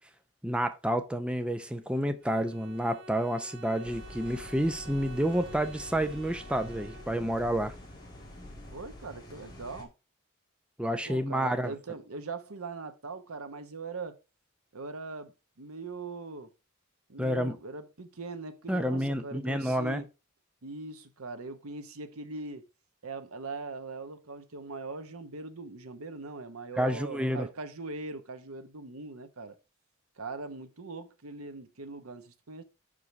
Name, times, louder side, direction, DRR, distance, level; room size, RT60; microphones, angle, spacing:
voice 1, 0.4-7.7 10.8-11.7 17.2-17.6 18.7-20.0 26.8-27.5, equal, 5° right, 0.5 m, -29 dB
Bowed string instrument, 2.2-7.5, right 1 dB, 60° right, 1.3 m, -49 dB
sound 1, 3.8-9.8, equal, 20° left, 1.9 m, -46 dB
voice 2, 8.7-9.9 11.1-14.2 14.7-15.3 15.6-16.5 17.1-20.1 20.6-22.6 23.0-29.5 30.2-32.6, right 3 dB, 85° right, 1.0 m, -41 dB
5.4 x 5.0 x 5.8 m
head